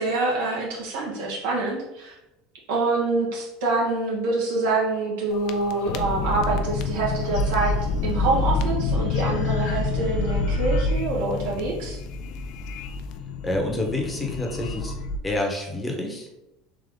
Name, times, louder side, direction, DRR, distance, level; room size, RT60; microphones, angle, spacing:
voice 1, 0.0-2.1 2.7-7.7 8.0-12.0, right 3 dB, 80° right, -4 dB, 1.3 m, -26 dB
sound 1, 5.3-15.2, left 3 dB, 60° left, 0.4 m, -27 dB
voice 2, 13.4-15.0 15.2-16.3, left 1 dB, 15° left, 1 dB, 0.9 m, -28 dB
3.6 x 2.8 x 3.7 m, 0.89 s
supercardioid pair, 95°, 0 cm